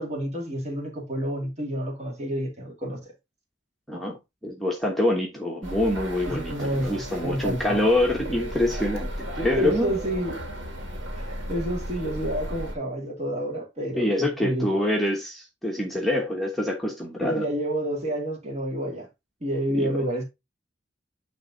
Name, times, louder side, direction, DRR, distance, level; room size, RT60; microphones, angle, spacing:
voice 1, 0.0-3.1 3.9-4.0 6.3-7.8 9.6-10.4 11.2-14.7 17.2-19.1 19.4-20.2, right 1 dB, 35° right, 2.4 m, -29 dB
voice 2, 4.4-9.9 14.0-17.4 19.7-20.0, left 1 dB, ahead, 1.2 m, -25 dB
sound 1, 5.6-12.7, equal, 85° right, 2.0 m, -35 dB
9.3 x 3.4 x 3.9 m
head